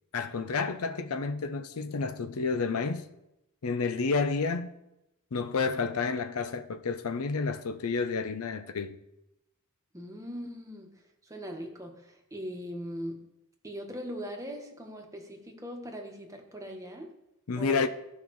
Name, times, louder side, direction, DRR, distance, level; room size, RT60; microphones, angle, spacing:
voice 1, 0.1-3.0 3.6-4.8 5.3-9.0 17.5-17.9, left 4 dB, 75° left, 0.6 m, -30 dB
voice 2, 9.9-10.9 11.2-13.2 13.6-17.1 17.6-17.9, equal, 15° right, 1.2 m, -40 dB
15.0 x 5.4 x 3.1 m
head